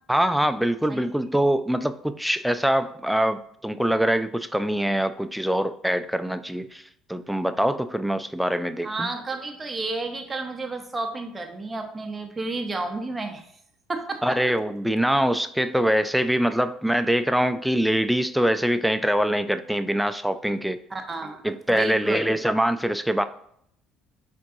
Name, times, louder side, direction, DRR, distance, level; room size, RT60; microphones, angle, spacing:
voice 1, 0.1-6.8 7.1-9.1 14.2-20.8 21.4-23.2, equal, ahead, 10 dB, 0.3 m, -24 dB
voice 2, 8.8-13.4 13.9-14.4 20.9-21.4 21.7-22.2, right 2 dB, 25° right, 4 dB, 0.8 m, -31 dB
4.5 x 3.6 x 2.6 m, 0.69 s
hypercardioid pair, 70°, 0 cm